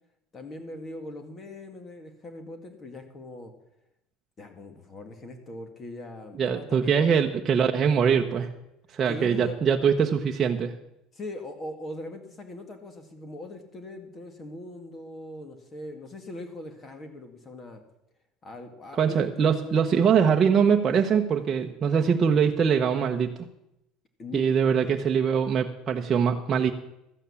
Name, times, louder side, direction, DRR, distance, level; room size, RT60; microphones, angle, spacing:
voice 1, 0.3-3.5 4.4-7.1 9.1-9.6 11.1-17.8 18.4-19.6 24.2-24.8, left 2 dB, 30° left, 7 dB, 1.9 m, -40 dB
voice 2, 6.4-8.5 8.9-10.7 19.0-23.3 24.3-26.7, right 7 dB, 30° right, 2 dB, 0.9 m, -23 dB
13.0 x 9.0 x 7.1 m, 0.84 s
cardioid pair, 130°, 0 cm